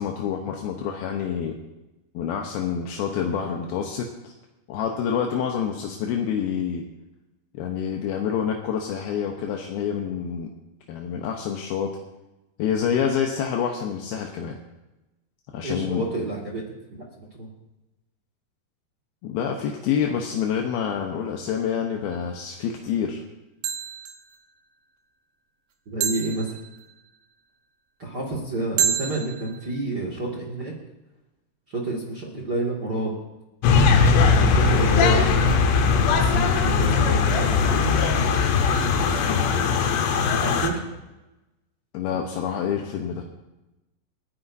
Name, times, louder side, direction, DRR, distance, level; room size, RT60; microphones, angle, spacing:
voice 1, 0.0-1.5 2.1-4.3 4.7-6.8 7.5-10.5 10.9-11.9 12.6-14.6 15.5-16.0 19.2-23.2 41.9-43.2, left 8 dB, 75° left, 2 dB, 2.4 m, -27 dB
voice 2, 15.6-16.6 16.9-17.5 25.8-26.6 28.0-30.7 31.7-33.2 34.3-37.9 38.6-39.7 40.4-40.8, right 2 dB, 55° right, -2 dB, 1.1 m, -30 dB
sound 1, 22.1-22.4 23.6-24.4 26.0-27.1 28.8-29.7, right 8 dB, 70° right, 2.2 m, -29 dB
sound 2, 33.6-40.7, left 5 dB, 90° left, 3.6 m, -19 dB
29.5 x 10.0 x 2.7 m, 1.0 s
omnidirectional pair, 5.3 m